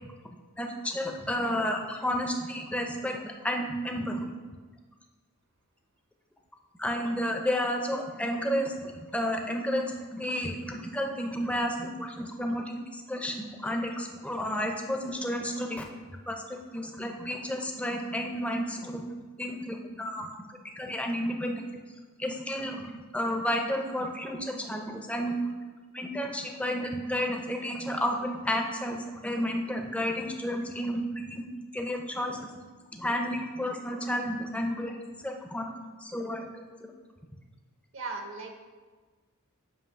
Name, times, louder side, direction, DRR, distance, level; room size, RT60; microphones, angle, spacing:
voice 1, 0.6-4.3 6.8-15.9 16.3-19.0 19.4-20.4 20.8-21.6 22.2-25.3 25.9-31.4 31.7-32.5 32.9-35.0 35.2-35.7 36.0-36.6, equal, 5° left, 2 dB, 0.5 m, -31 dB
voice 2, 37.9-38.5, right 3 dB, 60° right, 3 dB, 0.7 m, -37 dB
7.7 x 2.8 x 5.6 m, 1.4 s
head